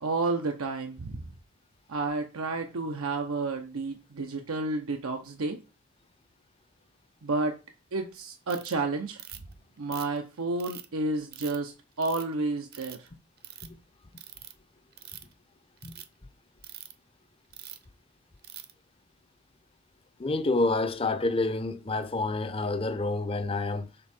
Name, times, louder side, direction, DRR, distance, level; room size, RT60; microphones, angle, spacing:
voice 1, 0.0-1.3 1.9-5.6 7.2-7.6 7.9-9.2 9.8-13.1, right 3 dB, 90° right, 0.7 m, -31 dB
Ratchet pawl, 8.5-8.7 9.2-9.5 9.9-10.9 11.3-11.6 12.0-12.3 12.7-13.1 13.4-13.7 14.2-14.5 14.9-15.3 15.8-16.0 16.6-16.9 17.5-17.8 18.4-18.7, right 11 dB, 50° right, 0.7 m, -44 dB
voice 2, 20.2-23.9, left 2 dB, 25° left, 0.5 m, -28 dB
6.7 x 3.6 x 4.2 m
head